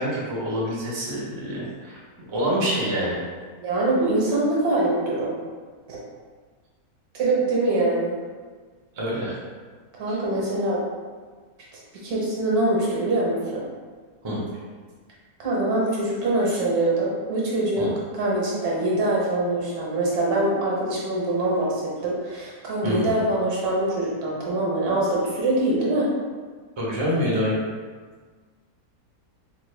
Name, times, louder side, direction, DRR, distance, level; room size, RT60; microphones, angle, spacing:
voice 1, 0.0-2.0 2.3-3.2 9.0-9.3 10.1-10.2 14.2-14.4 17.8-17.9 22.8-23.1 26.8-27.6, equal, 35° right, -6 dB, 0.4 m, -26 dB
voice 2, 3.6-5.3 5.9-6.0 7.1-8.2 9.9-10.8 12.0-13.6 15.4-17.9 18.2-26.1, right 2 dB, 70° right, -5 dB, 1.3 m, -24 dB
3.5 x 2.1 x 3.1 m, 1.5 s
omnidirectional pair, 1.7 m